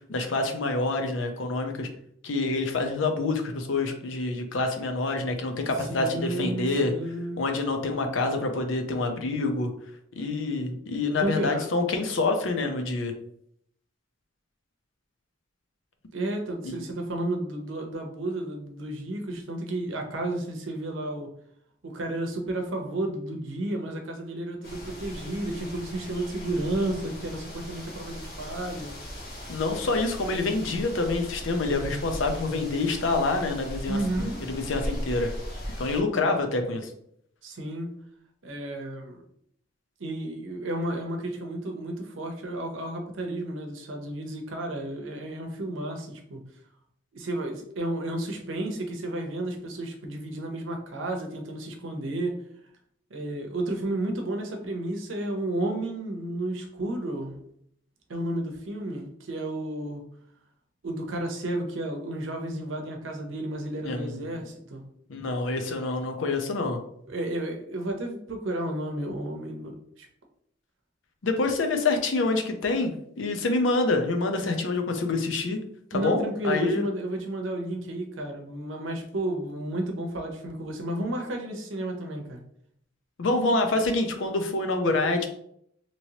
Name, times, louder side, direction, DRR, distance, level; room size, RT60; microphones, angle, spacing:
voice 1, 0.1-1.9 2.2-6.9 7.4-9.7 10.2-13.1 16.6-16.8 29.5-35.3 35.8-36.9 63.8-64.3 65.1-66.8 71.2-75.6 75.9-76.8 83.2-85.3, left 3 dB, 75° left, 5 dB, 0.5 m, -27 dB
voice 2, 5.9-7.4 11.2-11.7 16.1-21.3 21.8-28.9 33.9-34.4 37.4-37.9 38.4-39.2 40.0-46.4 47.1-52.4 53.1-57.4 58.1-60.0 60.8-64.8 67.1-70.1 75.9-82.4, right 1 dB, 80° right, 3 dB, 0.7 m, -32 dB
sound 1, 24.6-36.0, equal, 55° left, 1.1 m, -38 dB
2.9 x 2.9 x 2.8 m, 0.70 s
head